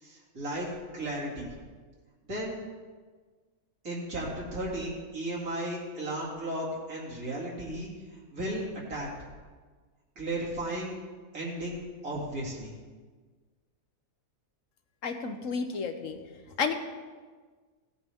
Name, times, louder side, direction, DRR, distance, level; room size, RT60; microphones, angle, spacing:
voice 1, 0.0-0.7 0.9-1.5 2.2-2.6 3.8-7.9 8.3-9.1 10.2-10.9 11.3-12.8, right 1 dB, 85° right, -5 dB, 2.9 m, -35 dB
voice 2, 15.0-16.2 16.6-16.7, left 5 dB, 65° left, 6 dB, 1.2 m, -31 dB
16.0 x 8.6 x 3.5 m, 1.5 s
omnidirectional pair, 1.5 m